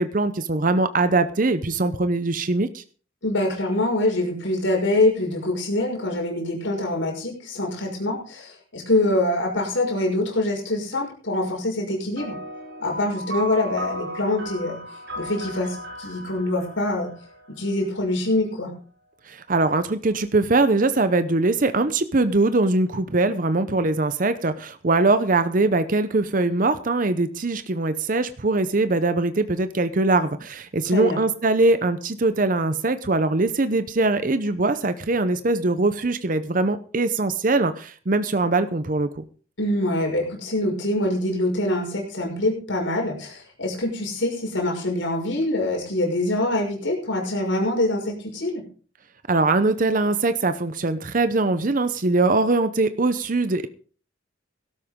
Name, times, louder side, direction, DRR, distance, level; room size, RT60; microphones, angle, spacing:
voice 1, 0.0-2.8 19.3-39.2 49.3-53.7, right 2 dB, 45° right, 11 dB, 0.7 m, -22 dB
voice 2, 3.2-12.4 12.8-17.1 17.5-18.7 30.9-31.2 39.6-48.6, left 1 dB, 75° left, 0 dB, 5.8 m, -24 dB
sound 1, 12.2-17.9, right 1 dB, 65° right, 7.4 m, -36 dB
17.5 x 12.5 x 3.7 m, 0.42 s
head